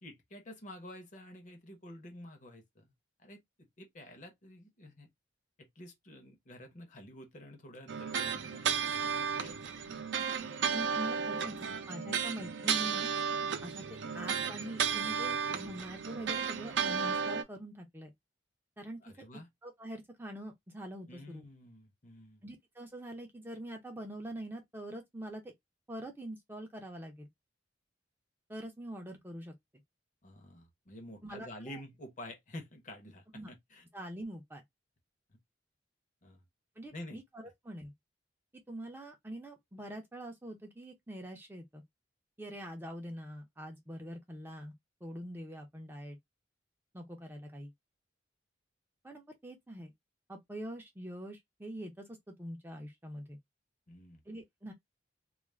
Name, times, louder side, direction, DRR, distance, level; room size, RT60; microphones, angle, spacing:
voice 1, 0.0-2.9 3.2-3.4 3.8-5.1 5.6-8.9 9.4-9.6 9.9-10.0 10.5-10.6 11.2-11.4 12.0-12.2 19.0-19.5 21.1-22.4 30.2-33.8 35.3-35.4 36.2-36.4 36.9-37.2 53.9-54.2, left 1 dB, 40° left, 0.7 m, -49 dB
sound 1, 7.9-17.4, right 6 dB, 70° right, 0.4 m, -33 dB
voice 2, 10.7-13.1 13.6-18.1 18.8-19.3 19.6-21.5 22.4-25.5 25.9-27.3 28.5-29.5 31.2-31.8 33.3-33.5 33.9-34.6 36.8-37.2 37.6-37.9 38.7-41.8 42.4-44.7 45.0-46.2 46.9-47.7 49.0-49.9 50.3-53.4 54.3-54.7, right 1 dB, 10° right, 0.4 m, -44 dB
2.3 x 2.0 x 3.0 m
head